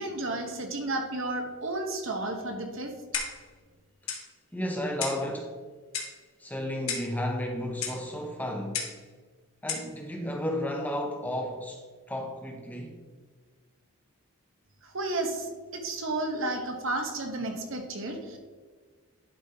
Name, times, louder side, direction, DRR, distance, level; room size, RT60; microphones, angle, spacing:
voice 1, 0.0-2.9 14.8-18.4, right 2 dB, 60° right, 4 dB, 1.1 m, -32 dB
Clock, 3.1-3.5 4.1-4.3 5.0-5.3 5.9-6.2 6.9-7.2 7.8-8.0 8.7-9.0 9.7-9.9, left 6 dB, 75° left, 1.2 m, -33 dB
voice 2, 4.5-5.5 6.4-8.8 9.6-13.0, left 1 dB, 5° left, 2 dB, 0.7 m, -33 dB
11.0 x 5.1 x 2.9 m, 1.5 s
head